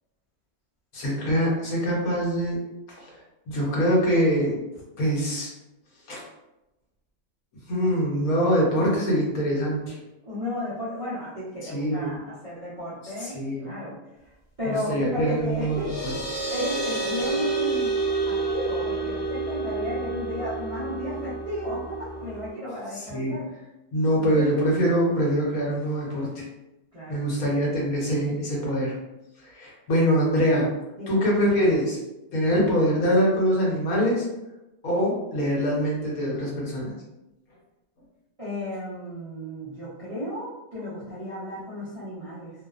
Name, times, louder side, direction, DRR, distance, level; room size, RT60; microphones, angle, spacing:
voice 1, 0.9-2.6 3.5-4.6 5.0-5.5 6.1-6.2 7.7-9.9 11.6-12.2 13.2-13.7 14.6-16.1 23.1-23.4 23.9-26.4 27.1-28.9 29.5-30.7 31.1-32.0 32.3-34.3 34.8-36.9, equal, 75° left, -3 dB, 1.2 m, -24 dB
voice 2, 10.2-14.0 14.6-15.9 16.5-17.9 18.3-23.4 24.1-24.5 26.9-27.2 31.0-31.2 38.4-42.5, left 1 dB, 45° right, -10 dB, 0.4 m, -33 dB
sound 1, 15.3-22.5, right 3 dB, 60° left, 1.0 m, -29 dB
2.7 x 2.0 x 2.4 m, 0.95 s
omnidirectional pair, 1.5 m